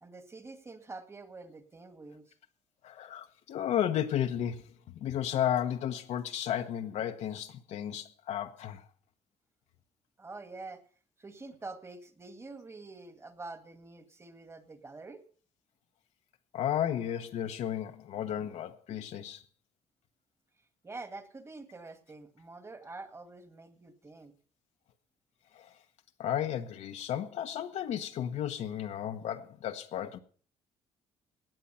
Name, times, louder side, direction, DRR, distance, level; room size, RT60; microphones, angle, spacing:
voice 1, 0.0-2.3 10.2-10.8 11.2-15.2 20.8-24.3, right 3 dB, 20° right, 1.9 m, -46 dB
voice 2, 2.8-4.7 4.9-8.9 16.5-19.4 25.5-25.7 26.2-30.2, left 10 dB, 75° left, 1.1 m, -33 dB
17.0 x 9.2 x 5.7 m
cardioid pair, 100°, 12 cm